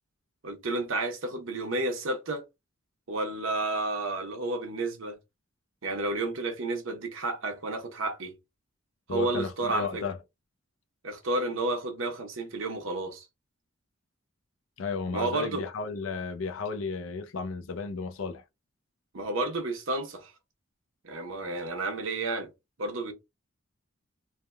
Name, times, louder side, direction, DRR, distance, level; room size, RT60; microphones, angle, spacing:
voice 1, 0.4-2.4 3.1-5.2 5.8-8.3 9.1-10.0 11.0-13.2 15.1-15.6 19.1-20.3 21.0-22.5 22.8-23.1, right 2 dB, 70° right, 0.8 m, -31 dB
voice 2, 9.1-10.2 14.8-18.4, left 4 dB, 75° left, 0.5 m, -33 dB
3.3 x 2.2 x 2.2 m
head